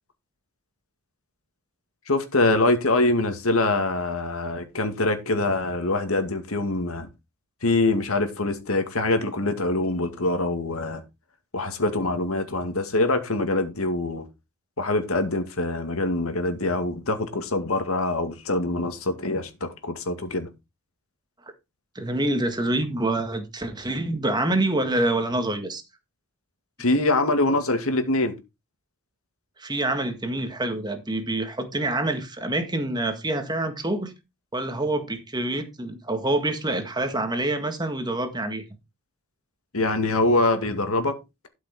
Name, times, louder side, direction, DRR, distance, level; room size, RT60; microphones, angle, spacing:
voice 1, 2.1-7.1 7.6-11.0 11.5-14.2 14.8-20.5 26.8-28.3 39.7-41.1, left 2 dB, 75° left, 2.1 m, -24 dB
voice 2, 21.9-25.8 29.6-34.1 34.5-38.6, right 2 dB, 20° right, 1.7 m, -26 dB
12.5 x 6.0 x 4.3 m
head